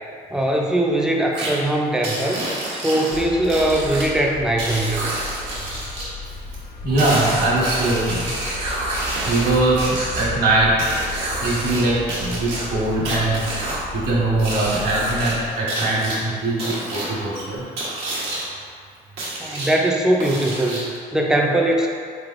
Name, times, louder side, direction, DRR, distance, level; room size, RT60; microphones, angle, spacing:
voice 1, 0.3-2.4 2.7-5.1 19.4-21.9, right 1 dB, 5° right, -1 dB, 0.4 m, -21 dB
sound 1, 1.3-1.5 2.0-4.1 4.6-6.1 7.0-10.2 10.8-11.8 12.1-13.8 14.4-15.3 15.7-16.2 16.6-17.1 17.8-18.4 19.2-19.7 20.2-21.0, right 2 dB, 85° right, 1.1 m, -28 dB
sound 2, 3.1-15.5, left 2 dB, 55° left, 0.8 m, -35 dB
voice 2, 6.8-8.3 9.3-10.9 11.4-17.6, right 2 dB, 65° right, -6 dB, 1.3 m, -21 dB
4.0 x 3.4 x 2.5 m, 2.2 s
cardioid pair, 110°, 17 cm